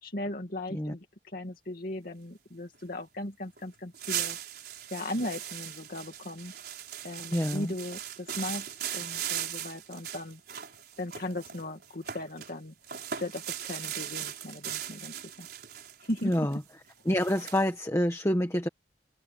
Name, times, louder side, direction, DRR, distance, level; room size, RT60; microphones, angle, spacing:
voice 1, 0.0-4.4 4.9-6.5 7.0-8.7 8.9-10.4 11.0-12.7 13.1-15.5 16.1-16.5, left 1 dB, 55° left, 2.5 m, -37 dB
sound 1, 3.6-3.7 3.9-12.5 12.8-17.7, right 10 dB, 60° right, 4.9 m, -38 dB
voice 2, 7.3-7.7 16.2-16.6 17.1-18.7, equal, 15° left, 1.7 m, -27 dB
open air
head